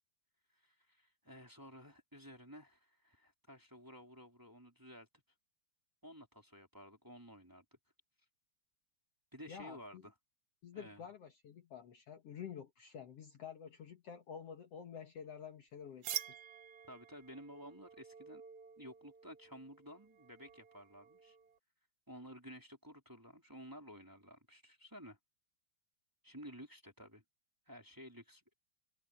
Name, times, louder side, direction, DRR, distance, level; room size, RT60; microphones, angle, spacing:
voice 1, 0.5-5.1 6.0-7.8 9.3-10.1 10.7-11.1 16.9-18.4 18.8-21.4 22.1-25.2 26.2-27.2 27.7-28.5, equal, 5° right, 3.0 m, -54 dB
voice 2, 9.5-10.0 10.6-16.1, left 7 dB, 85° left, 1.3 m, -49 dB
sound 1, 16.0-21.6, right 11 dB, 75° right, 1.7 m, -48 dB
open air
omnidirectional pair, 5.1 m